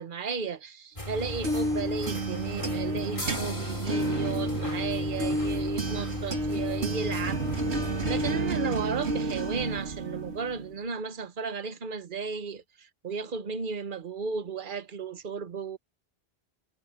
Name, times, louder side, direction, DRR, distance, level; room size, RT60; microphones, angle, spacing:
voice 1, 0.0-7.5 8.1-15.8, right 5 dB, 50° right, 1.3 m, -34 dB
sound 1, 1.0-8.3, left 1 dB, 30° left, 4.1 m, -36 dB
sound 2, 1.1-10.8, right 2 dB, 80° right, 2.3 m, -31 dB
sound 3, 3.2-6.7, left 1 dB, 75° left, 8.1 m, -43 dB
omnidirectional pair, 1.1 m